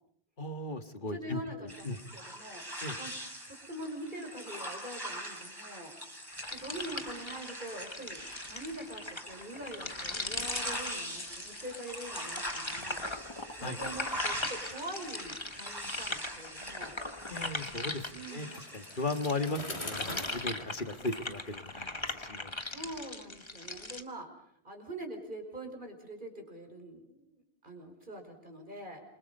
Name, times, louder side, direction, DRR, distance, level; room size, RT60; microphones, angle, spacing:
voice 1, 0.4-2.0 2.8-3.0 13.6-13.8 17.3-18.0 18.3-22.5, left 2 dB, 50° left, 9 dB, 1.8 m, -37 dB
voice 2, 1.0-2.6 3.0-3.2 3.5-5.9 6.5-8.2 8.5-13.1 13.5-16.9 18.1-18.6 22.6-24.3 24.6-29.0, right 1 dB, 50° right, 4 dB, 5.5 m, -44 dB
sound 1, 1.7-19.8, equal, 20° right, 5.3 m, -42 dB
sound 2, 6.3-18.5 18.9-24.0, left 2 dB, 25° left, 1.6 m, -40 dB
Bicycle, 18.4-22.2, left 1 dB, 80° left, 4.5 m, -43 dB
28.0 x 24.5 x 5.5 m, 0.65 s
omnidirectional pair, 1.1 m